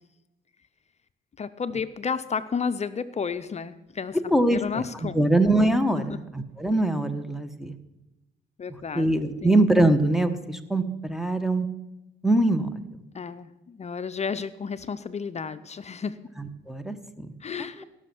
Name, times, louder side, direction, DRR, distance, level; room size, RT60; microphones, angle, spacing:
voice 1, 1.4-4.2 4.5-5.3 6.0-6.2 8.6-9.1 9.4-9.5 13.1-16.2 17.4-17.8, left 6 dB, 35° left, 13 dB, 0.6 m, -32 dB
voice 2, 4.3-7.7 8.9-11.7 12.2-12.7 16.4-17.3 17.8-17.9, right 1 dB, ahead, 10 dB, 1.1 m, -23 dB
17.0 x 6.3 x 6.0 m, 0.98 s
cardioid pair, 90°, 20 cm